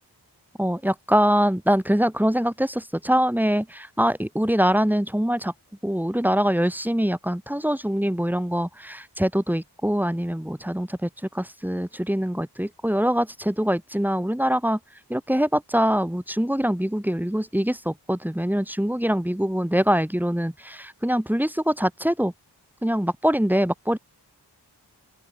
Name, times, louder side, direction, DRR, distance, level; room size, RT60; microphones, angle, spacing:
voice 1, 0.6-5.5 5.8-11.1 11.3-14.8 15.1-22.3 22.8-24.0, equal, 5° right, 2.2 m, -23 dB
open air
wide cardioid pair, 40°, 42 cm